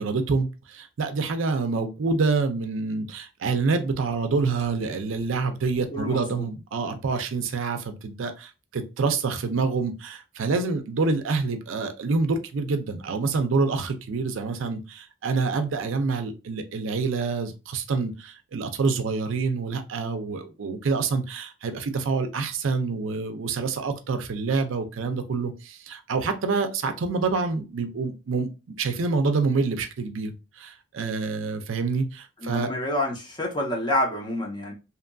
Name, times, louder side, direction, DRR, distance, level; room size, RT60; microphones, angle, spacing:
voice 1, 0.0-28.5 28.8-32.7, right 4 dB, 70° right, 0.4 m, -27 dB
voice 2, 5.9-6.5 32.4-34.7, left 1 dB, 20° left, 0.7 m, -28 dB
2.9 x 2.5 x 2.2 m
head